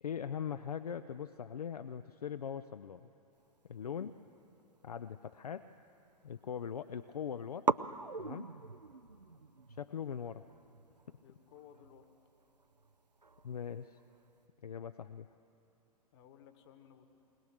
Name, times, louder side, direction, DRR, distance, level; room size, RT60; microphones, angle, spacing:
voice 1, 0.0-3.1 3.7-4.1 4.8-5.7 6.2-7.6 8.2-8.5 9.7-10.4 11.1-11.2 13.4-14.0 14.6-15.3, left 8 dB, 70° left, 12 dB, 0.5 m, -41 dB
sound 1, 4.1-5.9 6.2-6.8 7.1-7.2 7.6-14.4, right 4 dB, 90° right, 0.5 m, -41 dB
voice 2, 11.2-12.1 16.1-17.1, left 9 dB, 40° left, 7 dB, 1.6 m, -59 dB
21.0 x 20.0 x 6.6 m, 2.9 s
figure-of-eight pair, 110°, 20 cm